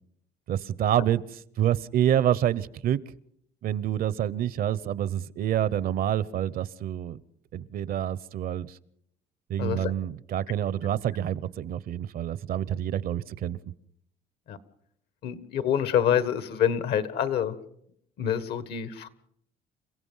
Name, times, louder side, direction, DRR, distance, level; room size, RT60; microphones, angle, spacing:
voice 1, 0.5-3.0 3.6-7.2 7.5-8.8 9.5-13.6, right 11 dB, 60° right, 0.8 m, -27 dB
voice 2, 9.6-9.9 14.5-14.6 15.2-17.6 18.2-19.1, left 9 dB, 70° left, 1.6 m, -26 dB
29.0 x 16.0 x 5.6 m
cardioid pair, 110°, 17 cm